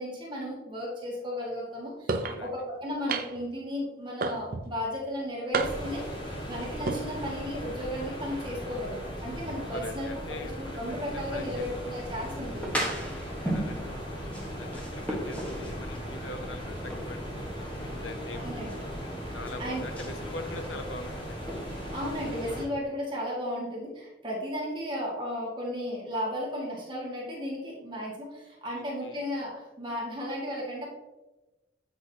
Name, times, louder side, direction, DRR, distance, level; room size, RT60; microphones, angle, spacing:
voice 1, 0.0-10.1 10.6-12.8 18.3-18.8 19.3-19.8 21.9-30.9, equal, 25° right, -4 dB, 1.8 m, -35 dB
sound 1, 2.1-2.4 3.1-3.5 4.2-4.7 5.5-6.0 6.7-7.0, right 3 dB, 50° right, 0.5 m, -30 dB
voice 2, 2.2-2.6 9.7-12.0 12.9-14.0 14.6-18.6 19.3-21.7 28.7-29.2, left 2 dB, 90° left, 8 dB, 0.8 m, -43 dB
sound 2, 5.5-22.6, equal, 25° left, 1.5 m, -38 dB
sound 3, 12.2-22.2, equal, 5° left, 1.2 m, -38 dB
8.0 x 6.1 x 2.8 m, 1.1 s
head